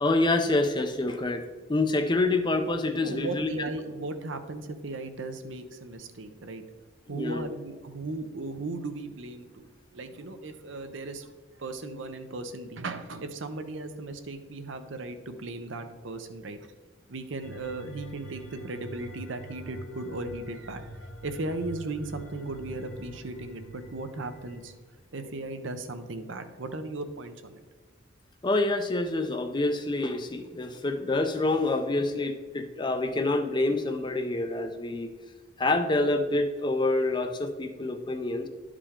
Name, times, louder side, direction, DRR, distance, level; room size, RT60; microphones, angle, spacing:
voice 1, 0.0-3.5 7.1-7.5 28.4-35.1 35.6-38.5, left 2 dB, 20° left, 7 dB, 0.5 m, -27 dB
voice 2, 3.0-6.6 7.1-9.6 9.9-11.3 11.6-16.6 17.1-20.9 21.2-24.7 25.1-27.6, right 2 dB, 65° right, 8 dB, 0.7 m, -36 dB
sound 1, 17.4-24.7, right 2 dB, 85° left, 1.3 m, -45 dB
11.5 x 5.0 x 3.6 m, 1.5 s
head